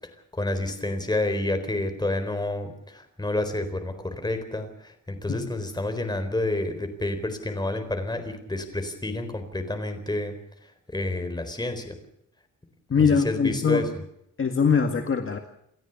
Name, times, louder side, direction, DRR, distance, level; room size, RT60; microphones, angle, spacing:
voice 1, 0.3-10.4 10.9-12.0 13.0-13.9, left 2 dB, 15° left, 7 dB, 4.1 m, -29 dB
voice 2, 12.9-13.9 14.4-15.4, left 6 dB, 40° left, 5 dB, 2.0 m, -22 dB
29.0 x 13.5 x 7.1 m, 0.76 s
wide cardioid pair, 125°, 31 cm